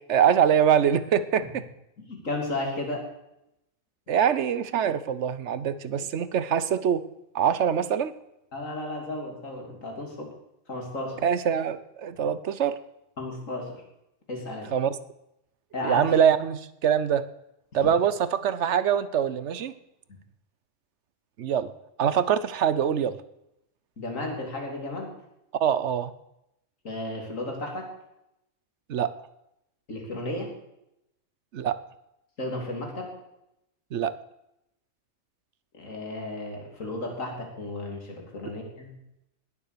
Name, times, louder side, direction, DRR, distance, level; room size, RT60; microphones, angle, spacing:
voice 1, 0.1-1.6 4.1-7.0 7.3-8.1 11.2-12.8 14.7-14.9 15.8-17.3 17.7-19.7 21.4-21.7 22.0-23.2 25.6-26.1 28.9-29.1 31.5-31.7 33.9-34.1, right 8 dB, 65° right, 15 dB, 1.0 m, -24 dB
voice 2, 2.1-3.0 8.5-10.3 10.7-11.2 13.2-13.7 14.3-14.7 15.7-16.2 17.8-17.9 24.0-25.1 26.8-27.9 29.9-30.5 32.4-33.1 35.8-38.9, left 2 dB, 90° left, 1 dB, 3.4 m, -33 dB
19.5 x 7.3 x 6.7 m, 0.83 s
omnidirectional pair, 1.3 m